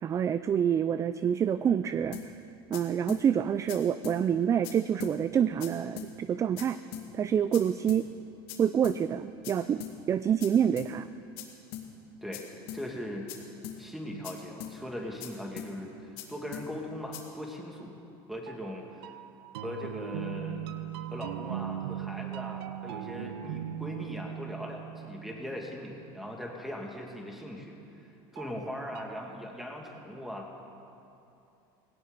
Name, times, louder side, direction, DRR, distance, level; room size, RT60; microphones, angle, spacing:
voice 1, 0.0-2.2 2.7-6.8 7.1-8.1 8.6-11.1, right 8 dB, 25° right, 13 dB, 0.3 m, -27 dB
sound 1, 2.1-2.3 2.7-2.8 3.1-3.2 3.7-3.8 4.0-4.2 4.6-4.7 5.0-5.1 5.6-5.7 6.0-6.1 6.6-6.7 6.9-7.1 7.5-7.6 7.9-8.0 8.5-8.6 8.8-9.0 9.4-9.5 9.8-9.9 10.4-10.5 10.8-10.9 11.4-11.5 11.7-11.9 12.3-12.4 12.7-12.8 13.3-13.4 13.6-13.8 14.2-14.3 14.6-14.7 15.2-15.3 15.6-15.7 16.2-16.3 16.5-16.7 17.1-17.2, left 12 dB, 75° left, 2.2 m, -40 dB
voice 2, 12.7-13.4 13.8-17.9 18.3-19.1 19.6-20.7 21.1-30.5, left 1 dB, ahead, 0 dB, 2.3 m, -40 dB
sound 2, 18.5-26.1 28.4-29.2, right 11 dB, 90° right, 0.6 m, -39 dB
17.5 x 17.0 x 4.0 m, 2.7 s
supercardioid pair, 120°, 12 cm